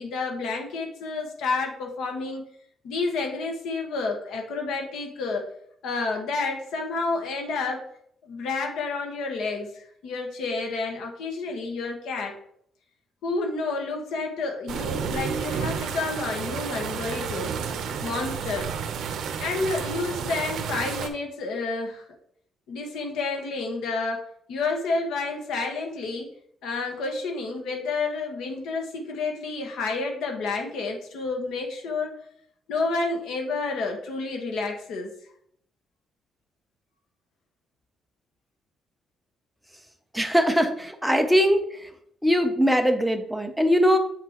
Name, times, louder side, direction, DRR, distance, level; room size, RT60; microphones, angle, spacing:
voice 1, 0.0-2.5 2.8-5.5 5.8-7.9 8.3-12.3 13.2-17.5 18.0-18.7 19.4-22.0 22.7-24.2 24.5-26.3 26.6-32.1 32.7-35.1, left 3 dB, 85° left, 2 dB, 1.4 m, -30 dB
sound 1, 14.7-21.1, right 6 dB, 70° right, 0.8 m, -31 dB
voice 2, 40.1-41.9 42.2-44.0, equal, ahead, 5 dB, 0.6 m, -21 dB
7.3 x 5.9 x 3.0 m, 0.68 s
cardioid pair, 170°, 0 cm